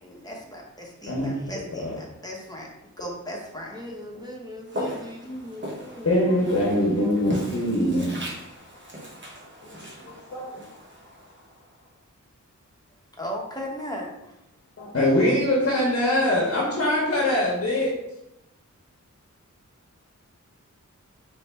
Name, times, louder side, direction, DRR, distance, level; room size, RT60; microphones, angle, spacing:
voice 1, 0.0-2.7 3.0-3.8 13.2-14.3, equal, 10° left, -2 dB, 1.0 m, -36 dB
voice 2, 3.7-8.1, equal, 15° right, -1 dB, 1.0 m, -40 dB
Walk footsteps, 4.7-11.8, equal, 40° right, 1.0 m, -38 dB
voice 3, 6.0-8.1 9.6-10.5 14.8-17.9, left 1 dB, 50° left, -3 dB, 0.9 m, -23 dB
4.1 x 3.2 x 3.4 m, 0.89 s
wide cardioid pair, 95°, 30 cm